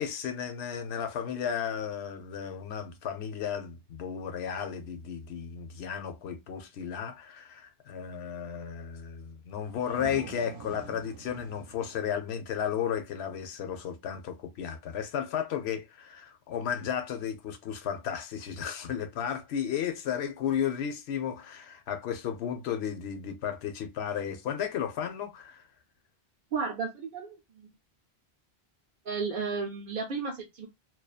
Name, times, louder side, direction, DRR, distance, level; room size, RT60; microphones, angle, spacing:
voice 1, 0.0-25.6, left 8 dB, 90° left, 0.9 m, -34 dB
sound 1, 9.5-13.1, right 7 dB, 90° right, 0.8 m, -46 dB
voice 2, 26.5-27.7 29.1-30.7, right 4 dB, 60° right, 0.6 m, -33 dB
2.6 x 2.2 x 2.3 m
omnidirectional pair, 1.1 m